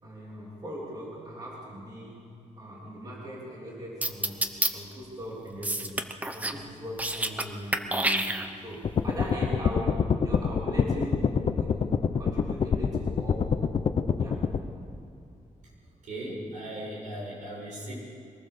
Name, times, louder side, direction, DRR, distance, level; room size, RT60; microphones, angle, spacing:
voice 1, 0.0-4.5 4.7-11.8 12.2-13.6 14.2-14.5, equal, 30° right, -4 dB, 3.3 m, -40 dB
sound 1, 4.0-4.7 5.6-6.6 6.9-7.4 7.7-8.7, right 1 dB, 10° right, 0.9 m, -28 dB
sound 2, 8.8-14.6, left 6 dB, 50° left, 0.8 m, -26 dB
voice 2, 16.0-17.9, right 1 dB, 80° right, -3 dB, 7.3 m, -37 dB
23.5 x 19.0 x 6.8 m, 2.6 s
wide cardioid pair, 180°, 13 cm